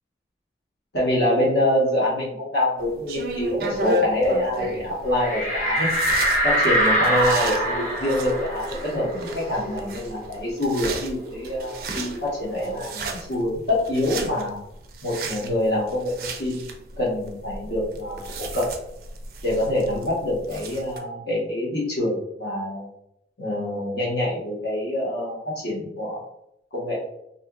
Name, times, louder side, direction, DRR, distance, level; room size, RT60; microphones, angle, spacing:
voice 1, 0.9-5.9 6.4-14.6 15.0-18.7 19.4-22.9 23.4-26.2 26.7-27.0, left 1 dB, 75° left, -5 dB, 1.1 m, -25 dB
sound 1, 2.8-21.0, right 1 dB, 55° right, 0.4 m, -34 dB
sound 2, 5.2-10.4 10.7-10.8 11.2-12.8, right 1 dB, 45° left, 0.6 m, -24 dB
2.8 x 2.4 x 2.3 m, 0.79 s
head